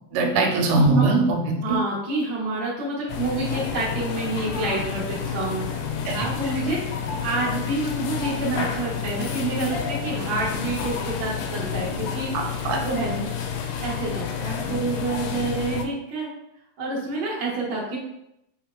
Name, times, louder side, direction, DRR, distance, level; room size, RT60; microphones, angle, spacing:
voice 1, 0.1-1.6 6.1-6.3 12.3-12.8, right 3 dB, 85° right, 3 dB, 2.2 m, -21 dB
voice 2, 1.6-13.2 13.5-16.3 16.8-18.0, right 2 dB, 65° right, -4 dB, 1.0 m, -28 dB
sound 1, 3.1-15.8, left 6 dB, 80° left, 2.0 m, -30 dB
4.7 x 3.6 x 2.3 m, 0.83 s
omnidirectional pair, 3.6 m